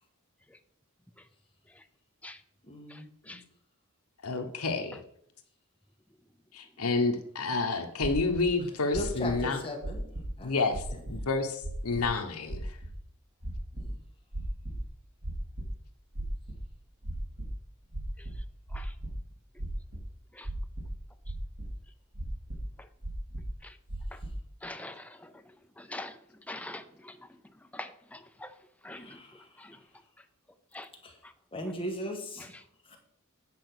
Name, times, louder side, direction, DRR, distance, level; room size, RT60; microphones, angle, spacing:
voice 1, 2.6-3.4 8.9-10.0 10.4-10.6 10.9-11.0 13.8-14.0 28.9-29.6 31.0-31.2 31.5-32.6 32.9-33.0, left 1 dB, 25° left, 2 dB, 1.7 m, -38 dB
voice 2, 4.2-5.0 6.5-9.6 10.4-10.8 11.1-12.8, left 3 dB, 80° left, 6 dB, 1.2 m, -29 dB
sound 1, 8.0-8.4 8.9-9.4 9.8-10.4 10.7-11.2 11.6-12.1 12.5-12.9 13.4-13.9 14.3-14.8 15.2-15.7 16.1-16.7 17.0-17.5 17.9-19.1 19.6-20.0 20.4-21.0 21.2-21.7 22.1-22.6 23.0-23.5 23.9-24.3, right 1 dB, 70° right, 2.6 m, -37 dB
voice 3, 24.6-25.3 25.8-26.2 26.5-27.2 27.7-28.5 28.8-29.2 29.6-29.8 30.7-30.9, left 1 dB, 5° left, 8 dB, 0.6 m, -43 dB
9.0 x 5.2 x 6.1 m, 0.69 s
head